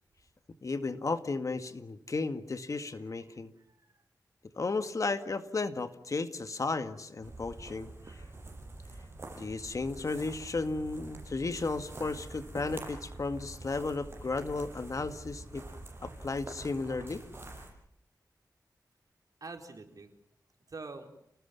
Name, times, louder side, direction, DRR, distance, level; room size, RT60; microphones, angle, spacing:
voice 1, 0.6-3.5 4.6-7.9 9.4-15.6 16.0-17.2, left 3 dB, 55° left, 10 dB, 2.0 m, -34 dB
voice 2, 2.9-4.0 19.4-20.1 20.7-21.1, right 3 dB, 60° right, 4 dB, 4.5 m, -47 dB
sound 1, 7.2-17.7, right 2 dB, 35° right, 7.0 m, -46 dB
29.5 x 19.5 x 7.2 m, 0.76 s
wide cardioid pair, 85°, 7 cm